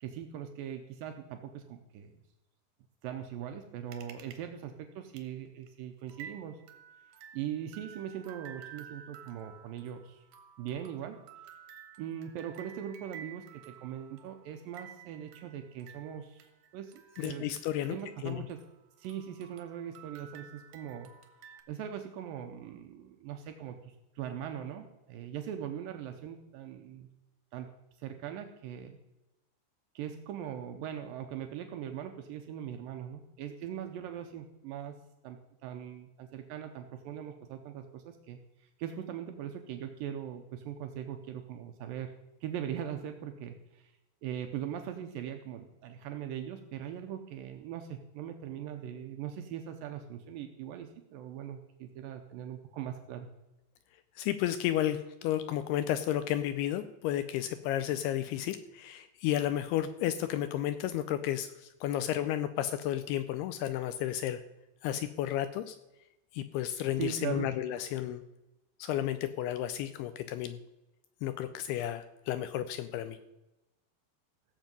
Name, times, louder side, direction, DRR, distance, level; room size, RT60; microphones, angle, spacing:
voice 1, 0.0-2.2 3.0-6.6 7.3-10.2 10.6-11.2 12.0-17.6 17.9-18.6 19.0-21.1 21.7-27.1 27.5-27.7 28.0-29.0 30.0-35.0 35.2-38.4 38.8-42.1 42.4-43.9 44.2-53.3 67.0-67.5, right 9 dB, 85° right, 6 dB, 2.0 m, -40 dB
sound 1, 3.9-4.4 4.7-4.8 5.2-5.3 5.6-5.7 6.1-18.8 19.0-21.6, right 8 dB, 70° right, 2.0 m, -52 dB
voice 2, 17.2-18.0 18.2-18.5 54.2-64.4 64.8-65.8 66.3-68.2 68.8-70.6 71.2-73.2, left 12 dB, 80° left, 11 dB, 2.4 m, -32 dB
16.5 x 7.3 x 5.3 m, 0.98 s
omnidirectional pair, 5.1 m